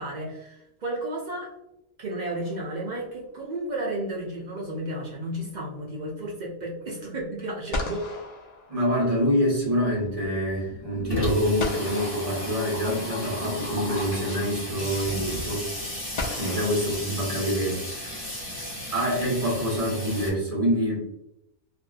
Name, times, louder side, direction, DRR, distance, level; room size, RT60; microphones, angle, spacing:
voice 1, 0.0-1.5 2.0-8.1 16.4-16.6, right 1 dB, 65° right, -3 dB, 0.4 m, -33 dB
sound 1, 2.2-3.1 7.2-7.3 7.7-9.4 11.6-13.2 14.5-14.6 16.2-17.8, left 2 dB, 85° left, 0.3 m, -36 dB
voice 2, 8.7-15.7 16.4-18.3 18.9-21.1, equal, 30° right, -6 dB, 1.1 m, -26 dB
Water tap faucet / Sink (filling or washing), 9.7-9.8 10.1-10.2 10.4-20.3, equal, 20° left, 1.1 m, -34 dB
2.8 x 2.5 x 2.4 m, 0.85 s
omnidirectional pair, 1.4 m